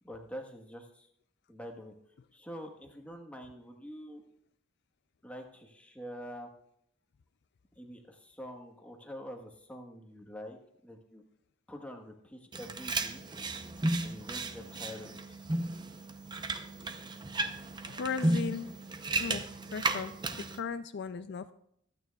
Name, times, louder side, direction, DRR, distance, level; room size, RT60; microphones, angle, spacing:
voice 1, 0.0-1.1 1.5-1.9 2.3-4.2 5.2-6.5 7.8-11.2 11.7-13.2 14.0-15.4, equal, 5° left, 2 dB, 1.2 m, -46 dB
sound 1, 12.5-20.6, right 2 dB, 20° right, 0.6 m, -34 dB
voice 2, 17.8-18.7 19.2-19.4 19.7-21.5, left 5 dB, 55° left, 10 dB, 0.4 m, -37 dB
24.5 x 9.0 x 2.3 m, 0.71 s
head